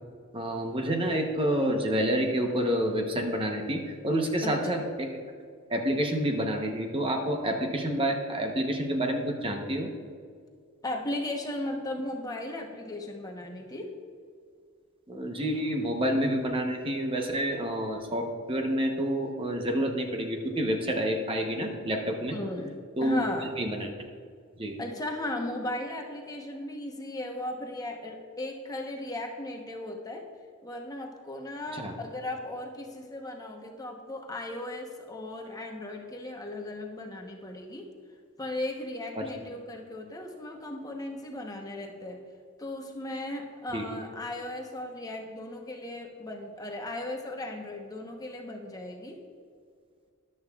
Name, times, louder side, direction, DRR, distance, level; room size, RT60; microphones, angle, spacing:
voice 1, 0.3-5.1 5.7-9.9 15.1-22.4 23.0-23.2 23.6-23.9 24.6-24.8 31.7-31.9 39.2-39.3 43.7-43.8, right 1 dB, 25° right, 3 dB, 0.9 m, -28 dB
voice 2, 4.4-4.8 10.8-13.9 22.3-23.5 24.8-30.2 30.6-37.9 38.4-42.2 42.6-49.2, left 1 dB, 15° left, 2 dB, 0.9 m, -36 dB
13.5 x 11.0 x 2.4 m, 2.2 s
head